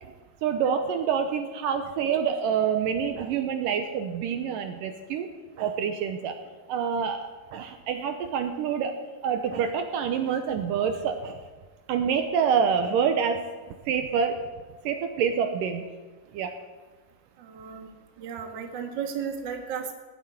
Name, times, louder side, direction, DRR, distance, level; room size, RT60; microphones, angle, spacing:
voice 1, 0.4-5.3 5.6-6.4 6.7-8.9 9.2-11.4 11.9-14.4 14.8-15.8 16.3-16.5, right 7 dB, 75° right, 6 dB, 2.3 m, -27 dB
voice 2, 17.4-17.9 18.2-19.9, right 7 dB, 45° right, 3 dB, 1.7 m, -34 dB
17.5 x 8.1 x 9.7 m, 1.3 s
omnidirectional pair, 4.3 m